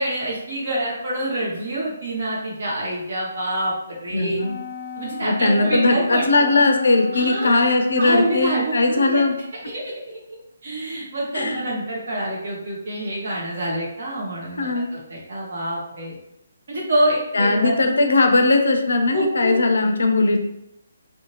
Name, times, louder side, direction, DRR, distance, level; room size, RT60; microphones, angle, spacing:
voice 1, 0.0-4.4 5.0-6.5 7.1-7.6 8.0-9.2 9.7-9.8 10.1-10.4 10.6-16.2 16.7-17.7 19.1-19.5, right 1 dB, 55° right, -3 dB, 1.0 m, -26 dB
voice 2, 4.1-4.6 5.2-9.3 11.3-11.6 14.6-14.9 17.3-20.4, left 2 dB, 65° left, 4 dB, 0.4 m, -19 dB
Wind instrument woodwind instrument, 4.4-8.7, left 3 dB, 10° right, 1.0 m, -35 dB
2.7 x 2.1 x 2.9 m, 0.82 s
figure-of-eight pair, 140°, 0 cm